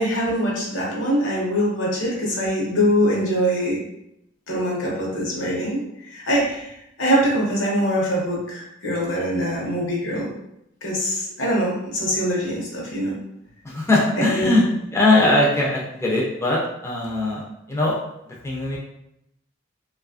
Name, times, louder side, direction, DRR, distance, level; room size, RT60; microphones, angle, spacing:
voice 1, 0.0-3.8 4.5-5.8 6.1-6.7 7.0-10.3 10.8-13.2 14.2-14.5, equal, 80° left, -3 dB, 0.8 m, -23 dB
voice 2, 13.6-18.0 18.4-18.8, left 2 dB, 15° left, -4 dB, 0.4 m, -20 dB
2.6 x 2.3 x 2.4 m, 0.80 s
head